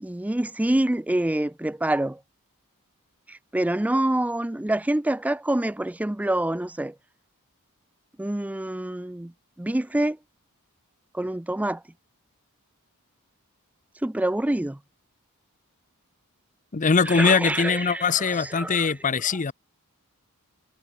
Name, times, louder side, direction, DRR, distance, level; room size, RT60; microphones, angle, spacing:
voice 1, 0.0-2.2 3.3-6.9 8.2-9.3 9.6-10.2 11.1-11.8 14.0-14.8 17.1-18.9, right 1 dB, 5° right, 0.4 m, -26 dB
voice 2, 16.7-19.5, left 5 dB, 35° left, 0.6 m, -22 dB
head